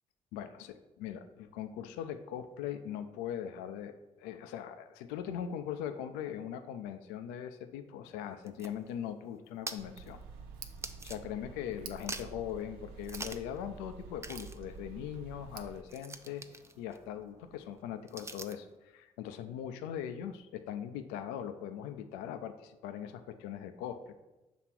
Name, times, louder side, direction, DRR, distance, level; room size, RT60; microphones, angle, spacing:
voice 1, 0.3-10.2 11.0-16.4 16.8-24.2, left 9 dB, 75° left, 9 dB, 0.5 m, -40 dB
sound 1, 8.2-11.6 11.9-12.5 13.0-13.6 13.8-13.9 14.2-18.7, right 2 dB, 15° right, 0.5 m, -47 dB
Tick, 9.8-15.8, right 6 dB, 75° right, 0.5 m, -48 dB
6.1 x 3.3 x 5.9 m, 1.0 s
hypercardioid pair, 45°, 17 cm